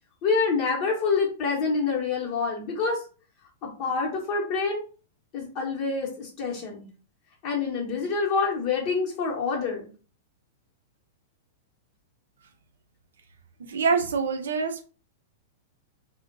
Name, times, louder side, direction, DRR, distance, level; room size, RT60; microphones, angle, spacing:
voice 1, 0.2-3.0 3.6-4.8 5.3-6.8 7.4-9.9, left 4 dB, 45° left, -2 dB, 0.9 m, -27 dB
voice 2, 13.6-14.8, right 5 dB, 80° right, 6 dB, 0.5 m, -25 dB
2.5 x 2.1 x 2.5 m, 0.38 s
hypercardioid pair, 120°, 0 cm